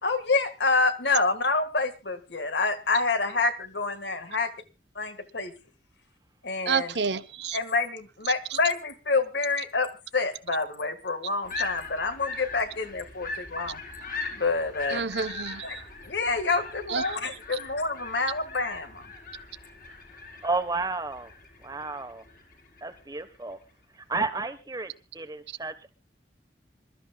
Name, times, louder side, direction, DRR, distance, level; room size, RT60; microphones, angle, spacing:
voice 1, 0.0-4.5 5.0-5.5 6.4-6.9 7.5-13.8 14.3-15.1 15.6-15.8 16.0-19.1, left 3 dB, 75° left, 1.8 m, -27 dB
voice 2, 6.7-7.6 14.9-15.8 16.9-17.0 17.5-17.6, right 5 dB, 75° right, 0.9 m, -29 dB
sound 1, 11.4-23.0, left 4 dB, 50° left, 4.6 m, -40 dB
voice 3, 20.4-21.3 21.6-22.2 22.8-23.6 24.0-25.9, right 3 dB, 20° right, 1.2 m, -32 dB
27.0 x 13.0 x 2.4 m
head